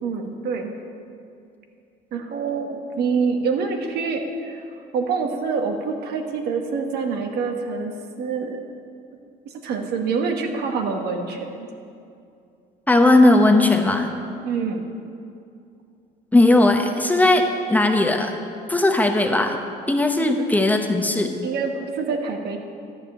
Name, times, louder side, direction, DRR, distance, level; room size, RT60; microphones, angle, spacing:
voice 1, 0.0-0.7 2.1-4.6 4.9-7.9 8.2-8.6 9.4-11.6 14.4-14.9 20.2-20.3 21.4-22.6, right 5 dB, 75° right, 4 dB, 1.2 m, -26 dB
voice 2, 12.9-14.1 16.3-18.3 18.7-19.6 19.9-21.3, left 2 dB, 10° left, 3 dB, 0.8 m, -17 dB
11.5 x 5.1 x 8.5 m, 2.5 s
cardioid pair, 110°, 17 cm